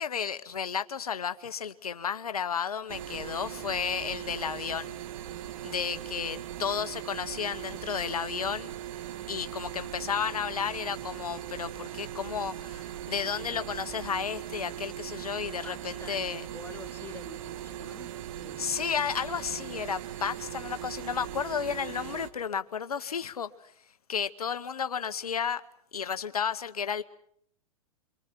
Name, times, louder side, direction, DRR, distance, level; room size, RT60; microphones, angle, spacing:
voice 1, 0.0-5.0 5.6-8.7 9.3-16.5 18.6-23.5 24.1-25.6 25.9-27.0, left 7 dB, 85° left, 1.0 m, -32 dB
sound 1, 2.9-22.3, right 12 dB, 60° right, 1.9 m, -39 dB
voice 2, 15.6-18.8, left 5 dB, 10° left, 1.8 m, -48 dB
26.5 x 24.5 x 6.0 m
hypercardioid pair, 105°, 19 cm